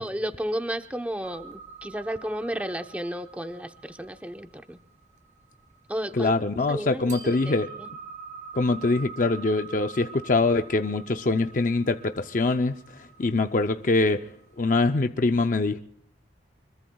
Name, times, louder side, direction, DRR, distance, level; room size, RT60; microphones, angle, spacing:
voice 1, 0.0-4.8 5.9-6.3 6.7-7.2 7.5-7.9, equal, 10° right, 6 dB, 0.9 m, -33 dB
sound 1, 1.2-6.4 7.1-14.6, right 5 dB, 45° right, 3.3 m, -46 dB
voice 2, 6.1-7.7 8.5-12.8 13.2-14.2 14.6-15.8, left 3 dB, 45° left, 7 dB, 0.6 m, -23 dB
25.0 x 22.0 x 2.3 m, 0.70 s
head